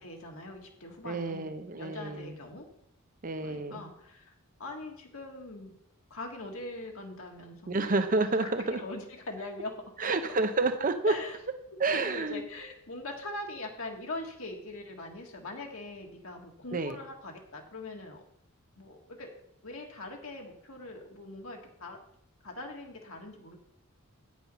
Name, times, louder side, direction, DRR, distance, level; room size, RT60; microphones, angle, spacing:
voice 1, 0.0-2.6 3.4-4.3 4.6-5.7 6.1-8.0 8.4-10.1 11.1-11.4 11.9-18.2 18.8-19.3 19.6-22.0 22.4-23.6, left 2 dB, 65° left, 1 dB, 1.8 m, -42 dB
voice 2, 1.0-2.4 3.2-3.8 7.7-8.8 10.0-11.1 11.8-12.4 16.7-17.0, right 3 dB, 40° right, 9 dB, 0.8 m, -29 dB
9.5 x 6.2 x 5.6 m, 0.73 s
head